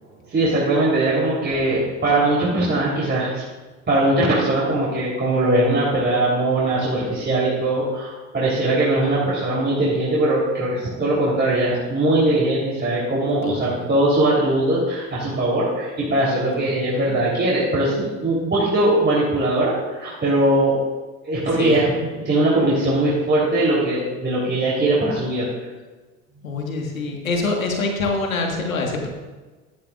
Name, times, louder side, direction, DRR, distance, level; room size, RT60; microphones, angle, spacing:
voice 1, 0.2-3.4 3.9-20.8 21.2-25.5, right 1 dB, 25° right, -7 dB, 3.8 m, -20 dB
voice 2, 13.4-13.9 16.5-17.2 21.6-21.8 26.4-29.1, left 3 dB, 80° left, 2 dB, 1.8 m, -26 dB
14.0 x 12.5 x 2.5 m, 1.3 s
figure-of-eight pair, 60°, 40 cm